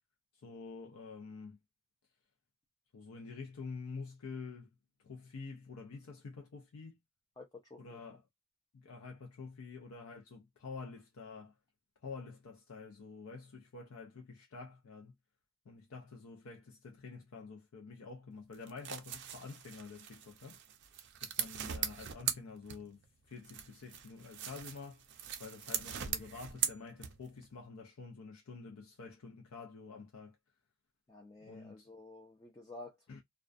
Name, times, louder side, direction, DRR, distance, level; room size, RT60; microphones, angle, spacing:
voice 1, 0.3-1.6 2.9-4.7 5.0-7.0 7.8-8.2 8.7-11.6 12.0-15.1 15.7-20.6 21.2-23.0 23.3-25.1 25.4-30.4 31.4-31.9 33.1-33.2, left 4 dB, 75° left, 0.5 m, -48 dB
voice 2, 7.4-8.0 31.1-33.0, left 2 dB, 15° left, 0.4 m, -51 dB
sound 1, 18.5-23.1 23.4-27.4, right 9 dB, 50° right, 0.4 m, -40 dB
2.3 x 2.2 x 2.4 m
head